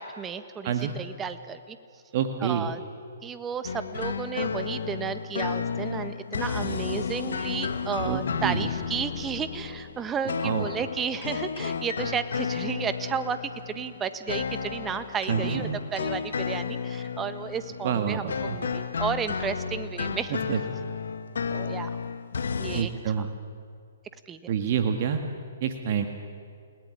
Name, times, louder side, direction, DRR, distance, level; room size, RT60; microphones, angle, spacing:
voice 1, 0.0-1.8 2.4-2.8 3.2-20.4 21.5-22.0 22.6-23.3 24.3-24.5, right 7 dB, 15° right, 11 dB, 1.4 m, -33 dB
voice 2, 2.1-2.7 8.0-8.7 10.4-10.7 15.3-15.8 17.8-18.6 20.3-20.6 22.7-23.3 24.5-25.2 25.6-26.1, right 8 dB, 50° right, 6 dB, 2.0 m, -27 dB
sound 1, 3.6-22.8, left 6 dB, 75° left, 1.8 m, -32 dB
29.5 x 18.5 x 9.9 m, 2.2 s
hypercardioid pair, 130°, 0 cm